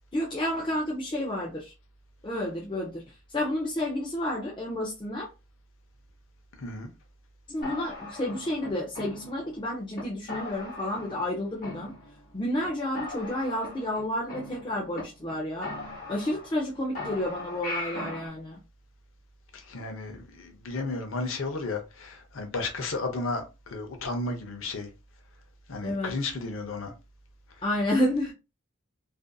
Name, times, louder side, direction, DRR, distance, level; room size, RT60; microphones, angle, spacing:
voice 1, 0.1-1.7 2.2-3.0 3.3-5.3 7.5-11.9 12.3-15.7 16.1-18.6 25.8-26.1 27.6-28.3, left 1 dB, 20° left, 0.5 m, -30 dB
voice 2, 6.6-6.9 19.5-24.9 25.7-26.9, left 3 dB, 65° left, 0.6 m, -33 dB
sound 1, 7.6-9.6 9.9-10.0 10.3-11.3 11.6-12.3 12.6-12.7 12.9-15.0 15.3-15.4 15.6-16.7 16.9-18.3, left 2 dB, 40° left, 1.1 m, -39 dB
2.5 x 2.5 x 2.2 m
head